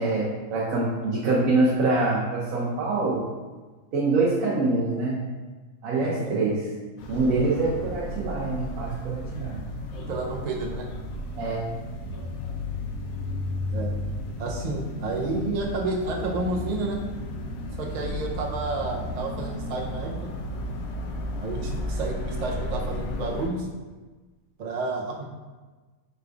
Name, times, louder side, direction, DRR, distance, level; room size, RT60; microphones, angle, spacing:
voice 1, 0.0-3.2 3.9-5.3 5.8-6.7 7.1-9.6 11.4-11.7, right 3 dB, 75° right, -5 dB, 1.1 m, -25 dB
voice 2, 6.0-6.3 9.9-10.8 13.7-13.9 14.4-17.0 17.8-20.1 21.4-23.7 24.6-25.2, right 2 dB, 60° right, 0 dB, 0.4 m, -30 dB
sound 1, 7.0-23.5, left 1 dB, 80° left, 1.0 m, -33 dB
5.0 x 3.3 x 2.4 m, 1.3 s
omnidirectional pair, 1.5 m